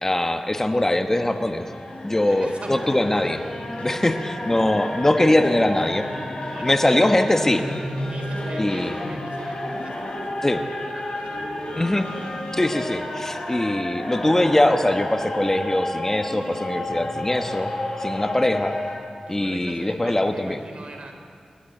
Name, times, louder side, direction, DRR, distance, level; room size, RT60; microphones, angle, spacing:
voice 1, 0.0-1.7 2.0-3.4 3.8-6.1 6.6-7.6 8.6-8.9 10.4-10.6 11.8-12.1 12.5-17.7 18.0-18.8 19.3-20.6, left 1 dB, 20° left, 6 dB, 1.2 m, -22 dB
sound 1, 0.9-18.9, left 1 dB, 55° left, 6.6 m, -31 dB
voice 2, 2.3-3.3 3.8-4.4 6.3-7.2 8.0-10.5 10.7-12.1 12.6-12.8 19.3-21.1, right 2 dB, 60° right, 3 dB, 3.9 m, -42 dB
27.0 x 12.5 x 9.3 m, 2.2 s
wide cardioid pair, 100°, 2 cm